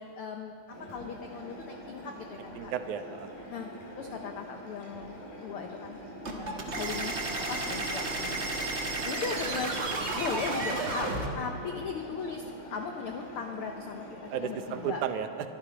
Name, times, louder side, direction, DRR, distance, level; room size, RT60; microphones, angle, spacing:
voice 1, 0.0-2.7 3.5-3.7 4.0-6.0 6.3-8.5 9.0-9.8 10.1-15.0, left 6 dB, 90° left, 4 dB, 1.2 m, -38 dB
sound 1, 0.7-15.0, equal, 75° left, 6.5 m, -45 dB
voice 2, 2.6-3.3 14.3-15.5, right 8 dB, 80° right, 9 dB, 2.2 m, -33 dB
sound 2, 6.2-11.3, right 2 dB, 35° right, 1.1 m, -32 dB
23.5 x 12.0 x 5.1 m, 2.5 s
omnidirectional pair, 3.6 m